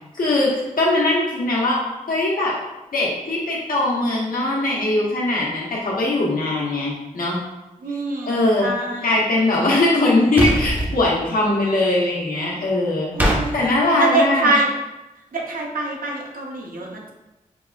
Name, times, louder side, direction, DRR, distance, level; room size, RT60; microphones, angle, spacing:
voice 1, 0.1-2.5 2.9-7.4 8.2-8.8 9.0-14.6, left 2 dB, 80° left, -5 dB, 1.0 m, -21 dB
voice 2, 7.8-8.3 8.6-9.1 13.1-13.7 14.0-14.7 15.3-17.1, right 2 dB, 80° right, -1 dB, 0.7 m, -24 dB
sound 1, 10.4-10.9 13.2-13.4, right 1 dB, 10° right, 0.5 m, -20 dB
4.6 x 2.4 x 2.3 m, 1.0 s
wide cardioid pair, 90°, 14 cm